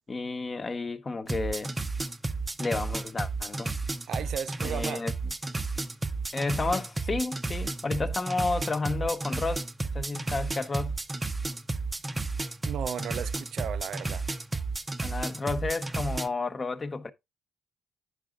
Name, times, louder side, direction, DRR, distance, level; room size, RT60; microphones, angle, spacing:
voice 1, 0.1-1.7 2.6-3.7 4.6-5.1 6.3-9.7 9.9-11.0 15.0-17.1, left 3 dB, 30° left, 1.0 m, -31 dB
sound 1, 1.3-16.3, right 3 dB, 20° right, 0.7 m, -32 dB
voice 2, 4.1-5.1 12.6-14.3, right 9 dB, 65° right, 0.5 m, -35 dB
10.0 x 5.0 x 3.7 m
cardioid pair, 90°, 0 cm